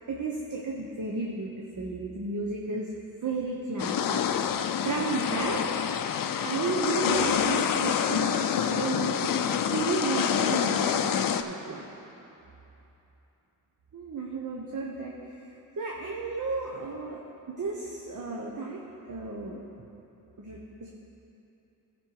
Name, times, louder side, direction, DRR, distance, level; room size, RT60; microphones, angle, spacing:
voice 1, 0.0-2.9 3.2-5.6 6.4-9.3 9.6-11.0 11.4-11.9 13.9-15.5 15.8-17.2 17.5-19.6 20.4-20.9, right 3 dB, 50° right, -2 dB, 1.0 m, -33 dB
sound 1, 3.8-11.4, left 8 dB, 60° left, 0.5 m, -27 dB
13.5 x 5.4 x 4.7 m, 3.0 s
cardioid pair, 70°, 39 cm